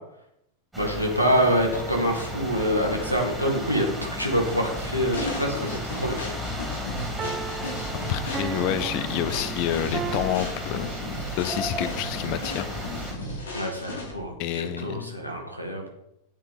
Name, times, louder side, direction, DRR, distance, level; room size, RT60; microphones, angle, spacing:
sound 1, 0.7-13.1, equal, 5° right, 2.7 m, -34 dB
voice 1, 0.8-6.2 13.5-15.8, equal, 90° left, 1 dB, 2.0 m, -26 dB
sound 2, 1.7-2.7 7.2-10.4, right 6 dB, 20° right, 0.6 m, -37 dB
sound 3, 5.1-14.3, left 1 dB, 65° left, 2.7 m, -35 dB
voice 2, 8.1-10.9 11.4-12.7 14.4-15.2, left 11 dB, 45° left, 12 dB, 0.8 m, -28 dB
9.2 x 6.9 x 4.3 m, 0.81 s
figure-of-eight pair, 90°, 0 cm